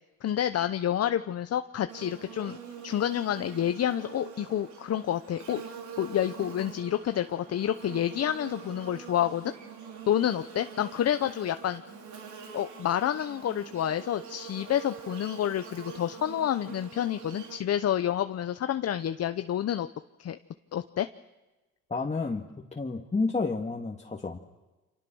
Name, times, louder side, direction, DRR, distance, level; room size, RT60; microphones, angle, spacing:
voice 1, 0.2-2.6 2.8-9.5 10.1-11.8 12.5-19.9 20.2-20.4 20.7-21.1, left 10 dB, 55° left, 10 dB, 0.9 m, -29 dB
Buzz, 1.9-17.6, right 7 dB, 70° right, 4.4 m, -44 dB
voice 2, 21.9-24.4, left 3 dB, 20° left, 1 dB, 2.2 m, -30 dB
30.0 x 26.5 x 6.4 m, 1.1 s
cardioid pair, 90°, 30 cm